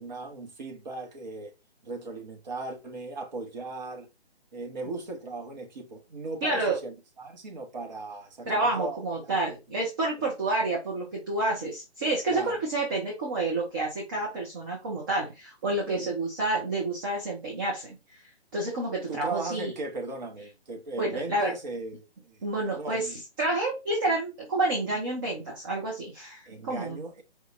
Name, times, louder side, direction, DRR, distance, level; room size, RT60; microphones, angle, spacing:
voice 1, 0.0-1.5 1.8-4.1 4.5-9.2 10.2-10.3 12.3-12.6 15.9-16.2 19.1-23.2 26.5-27.2, right 3 dB, 40° right, 1.2 m, -37 dB
voice 2, 6.4-6.8 8.5-18.2 18.5-19.7 21.0-21.5 22.4-27.0, right 2 dB, 20° right, 0.8 m, -29 dB
4.8 x 2.8 x 3.1 m
figure-of-eight pair, 140°, 34 cm